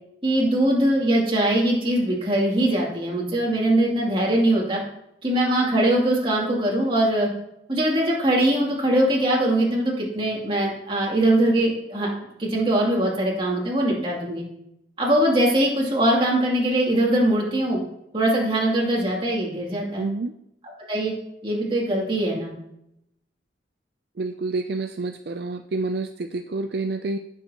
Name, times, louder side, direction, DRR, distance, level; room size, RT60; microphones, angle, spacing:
voice 1, 0.2-4.8 5.2-7.3 7.7-12.1 12.4-14.4 15.0-17.8 18.1-20.0 20.9-21.1 21.4-22.5, right 1 dB, 30° right, -3 dB, 2.8 m, -21 dB
voice 2, 20.0-20.3 24.2-27.2, right 3 dB, 55° right, 7 dB, 0.4 m, -28 dB
16.5 x 6.9 x 2.9 m, 0.80 s
head